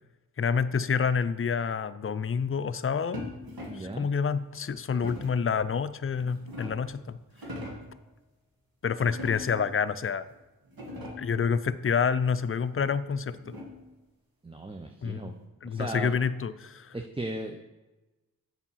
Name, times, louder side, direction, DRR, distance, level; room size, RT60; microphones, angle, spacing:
voice 1, 0.4-3.3 3.7-7.2 8.8-10.3 11.2-13.5 15.0-15.2 15.6-16.9, left 6 dB, 40° left, 14 dB, 0.5 m, -28 dB
sound 1, 3.1-4.0 5.0-5.5 6.1-6.9 7.3-7.9 9.0-9.7 10.3-10.4 10.6-11.4 12.8-13.9, left 1 dB, 75° right, 1.9 m, -41 dB
voice 2, 3.7-4.1 14.4-15.3 15.6-16.1 16.9-17.6, right 2 dB, 15° right, 4 dB, 0.6 m, -36 dB
7.2 x 5.5 x 5.7 m, 1.1 s
cardioid pair, 40°, 35 cm